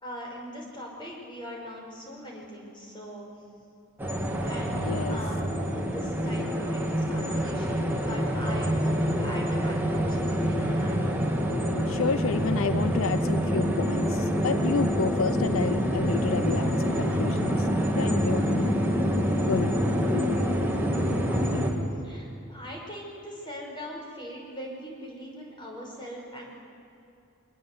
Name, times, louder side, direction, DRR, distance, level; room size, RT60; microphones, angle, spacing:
voice 1, 0.0-3.3 4.4-11.0 21.3-21.7 22.0-26.4, equal, 25° left, -1 dB, 5.3 m, -41 dB
sound 1, 4.0-21.7, equal, 10° right, 2.4 m, -26 dB
voice 2, 4.7-5.2 11.9-17.7 18.0-18.7 19.5-19.7, left 5 dB, 75° left, 13 dB, 0.5 m, -30 dB
23.0 x 19.5 x 8.0 m, 2.7 s
head